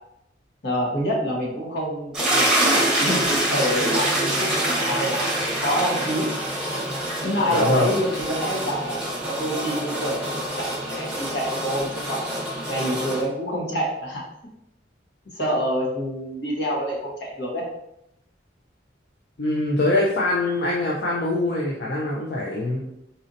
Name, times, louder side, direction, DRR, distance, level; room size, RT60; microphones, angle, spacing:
voice 1, 0.6-5.2 5.6-6.3 7.2-12.2 12.7-14.2 15.3-17.6, equal, 75° left, -3 dB, 1.2 m, -27 dB
sound 1, 2.1-13.2, right 1 dB, 5° right, 0.9 m, -25 dB
voice 2, 7.5-7.9 19.4-22.8, left 2 dB, 60° left, -4 dB, 0.5 m, -23 dB
4.1 x 2.7 x 2.6 m, 0.78 s
head